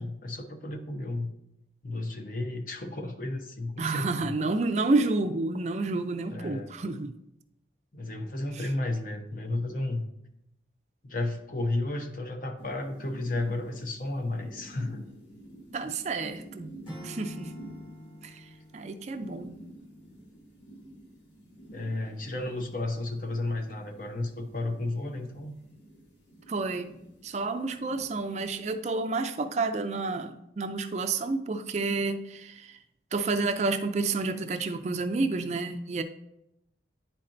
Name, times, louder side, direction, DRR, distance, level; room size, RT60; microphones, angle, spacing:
voice 1, 0.0-1.3 1.8-4.5 6.3-6.7 7.9-10.0 11.0-15.1 21.7-25.5, left 2 dB, 50° left, 5 dB, 0.7 m, -33 dB
voice 2, 3.8-7.2 8.5-8.7 15.7-16.7 17.0-17.5 18.2-18.4 18.7-19.5 26.5-26.9 27.2-32.8 33.1-36.0, right 3 dB, 40° right, 8 dB, 0.4 m, -30 dB
sound 1, 12.6-28.7, right 1 dB, 80° left, 1.4 m, -50 dB
Acoustic guitar / Strum, 16.8-19.9, equal, 30° left, 2.3 m, -46 dB
10.0 x 4.3 x 2.5 m, 0.83 s
head